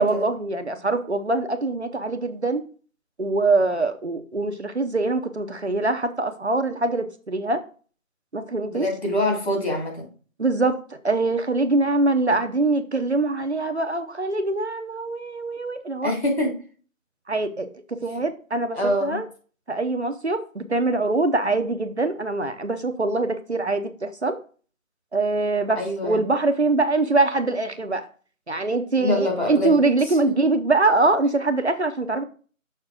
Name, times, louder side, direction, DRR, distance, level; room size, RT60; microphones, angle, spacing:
voice 1, 0.0-2.6 3.2-7.6 8.3-8.9 10.4-10.8 11.0-16.1 17.3-19.3 19.7-24.4 25.1-28.1 28.5-32.2, right 3 dB, 55° right, 8 dB, 0.8 m, -23 dB
voice 2, 8.7-10.1 16.0-16.5 18.7-19.2 25.8-26.2 29.0-29.7 30.3-30.4, left 1 dB, 50° left, 1 dB, 2.8 m, -24 dB
6.6 x 5.3 x 3.6 m, 0.39 s
figure-of-eight pair, 175°, 41 cm